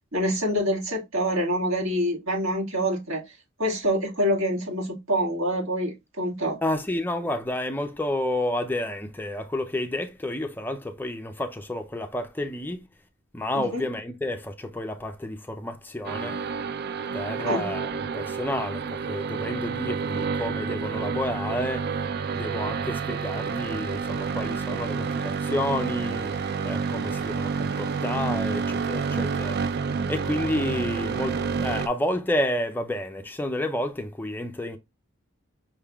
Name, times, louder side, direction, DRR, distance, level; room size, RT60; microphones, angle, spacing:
voice 1, 0.1-3.2 3.6-6.6 13.5-13.8 17.4-17.7, equal, 75° right, 2.0 m, -26 dB
voice 2, 6.6-12.8 13.3-16.4 17.1-21.9 22.3-26.3 26.6-29.6 30.1-34.8, left 1 dB, 10° left, 0.4 m, -30 dB
sound 1, 16.0-31.9, right 5 dB, 50° right, 0.4 m, -29 dB
5.5 x 3.4 x 2.3 m
head